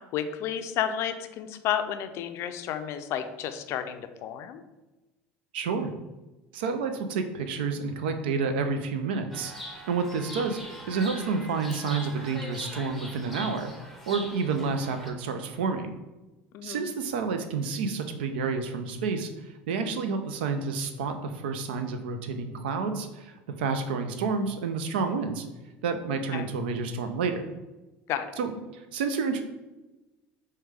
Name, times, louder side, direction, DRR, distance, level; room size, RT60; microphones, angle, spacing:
voice 1, 0.1-4.6 16.5-16.9 26.3-26.5 28.1-28.3, left 9 dB, 60° left, 9 dB, 0.4 m, -31 dB
voice 2, 5.5-5.9 6.5-9.5 9.9-13.7 14.1-15.9 16.6-25.5 25.8-27.4 28.4-29.4, right 4 dB, 90° right, 7 dB, 0.4 m, -29 dB
Chirp tweet, 9.3-15.1, equal, ahead, 0.6 m, -41 dB
4.8 x 2.2 x 3.3 m, 1.1 s
supercardioid pair, 95°, 5 cm